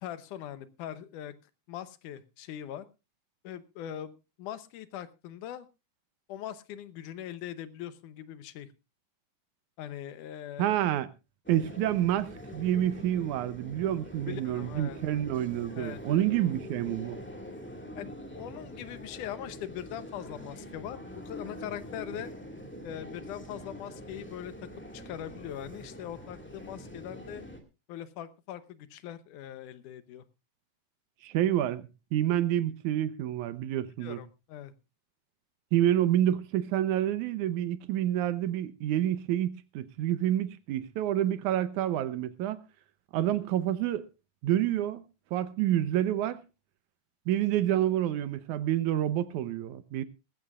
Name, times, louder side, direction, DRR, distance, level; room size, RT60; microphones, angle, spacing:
voice 1, 0.0-1.3 1.7-2.9 3.4-4.1 4.4-5.7 6.3-8.7 9.8-10.8 14.3-15.0 15.8-16.3 17.9-22.3 22.8-24.5 24.9-27.5 27.9-30.2 34.0-34.7, left 11 dB, 85° left, 2.4 m, -41 dB
voice 2, 10.6-11.1 11.5-17.2 31.2-34.2 35.7-42.6 43.1-44.1 44.4-45.0 45.3-46.4 47.3-50.0, right 12 dB, 80° right, 2.2 m, -28 dB
Crowd Walla Rijksmusem Amsterdam NL, 11.4-27.6, equal, 5° left, 1.2 m, -44 dB
19.5 x 15.0 x 2.4 m
omnidirectional pair, 3.5 m